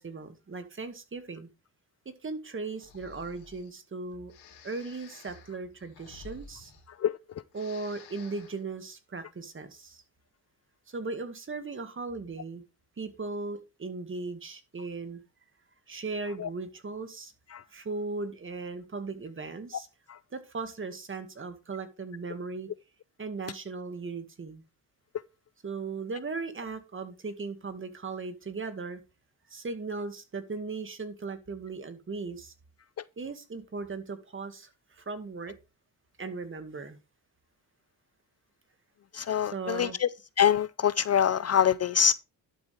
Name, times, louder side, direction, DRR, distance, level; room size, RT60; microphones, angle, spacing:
voice 1, 0.0-1.5 2.2-4.3 4.6-6.7 7.5-10.0 10.9-12.6 13.0-15.2 15.9-17.3 17.7-19.9 20.3-22.7 23.2-24.6 25.6-29.0 29.5-32.5 33.2-35.6 36.2-37.0 39.4-40.0, right 3 dB, 30° right, 2.1 m, -37 dB
Breathing, 2.7-3.7 4.3-7.2 7.5-8.6, left 5 dB, 90° left, 3.7 m, -52 dB
voice 2, 39.1-40.1 40.4-42.1, left 8 dB, 40° left, 0.5 m, -24 dB
11.5 x 7.5 x 3.4 m
cardioid pair, 95°, 39 cm